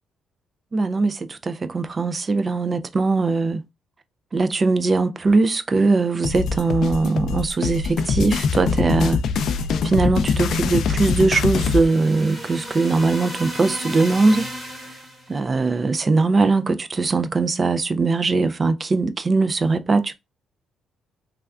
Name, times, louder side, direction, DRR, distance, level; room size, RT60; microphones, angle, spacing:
voice 1, 0.7-3.6 4.3-9.2 9.5-14.5 15.3-20.1, right 3 dB, 30° right, 0.3 m, -21 dB
sound 1, 6.2-11.9, left 5 dB, 65° left, 0.3 m, -23 dB
sound 2, 10.5-15.3, equal, 5° right, 1.4 m, -35 dB
3.2 x 2.3 x 2.3 m
cardioid pair, 120°, 0 cm